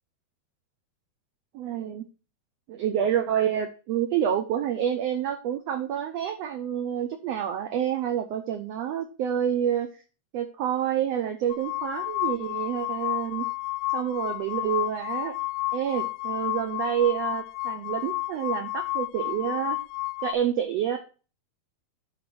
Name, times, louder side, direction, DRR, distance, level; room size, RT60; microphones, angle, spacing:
voice 1, 1.5-2.1 2.7-9.9 10.3-13.5 13.9-15.3 15.7-19.8 20.2-21.0, right 9 dB, 80° right, 5 dB, 1.5 m, -28 dB
sound 1, 11.5-20.4, left 19 dB, 80° left, 2.0 m, -31 dB
8.8 x 3.7 x 6.0 m, 0.35 s
omnidirectional pair, 3.8 m